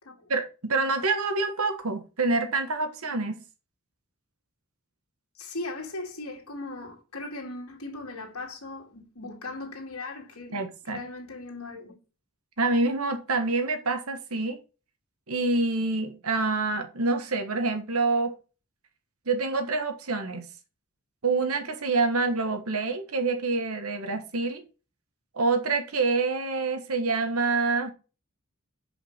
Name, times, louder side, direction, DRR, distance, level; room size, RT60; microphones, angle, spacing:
voice 1, 0.3-3.4 10.5-11.0 12.6-14.6 15.3-18.4 19.3-20.5 21.2-24.6 25.3-27.9, right 3 dB, 80° right, 1.4 m, -27 dB
voice 2, 5.3-12.0, left 2 dB, 85° left, 2.4 m, -38 dB
5.9 x 5.1 x 5.7 m
head